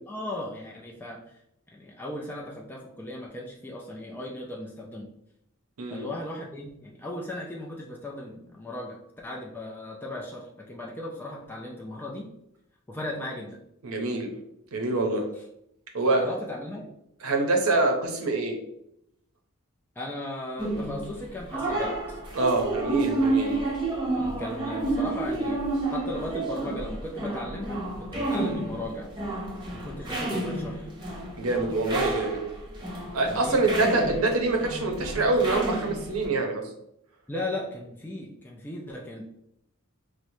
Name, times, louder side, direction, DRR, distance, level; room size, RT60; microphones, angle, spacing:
voice 1, 0.1-1.4 1.7-5.1 5.9-12.3 12.9-13.6 16.2-16.9 20.0-22.2 23.3-23.7 24.1-25.6 25.9-29.1 29.7-30.9 33.3-33.9 37.3-39.2, left 1 dB, 10° left, -2 dB, 0.3 m, -37 dB
voice 2, 13.8-14.3 14.7-15.3 15.9-16.2 17.2-18.6 22.3-23.5 31.4-32.4 33.1-36.6, right 2 dB, 80° right, 2 dB, 0.6 m, -25 dB
sound 1, 20.6-36.3, right 2 dB, 20° right, 0.7 m, -30 dB
4.4 x 2.1 x 2.6 m, 0.78 s
head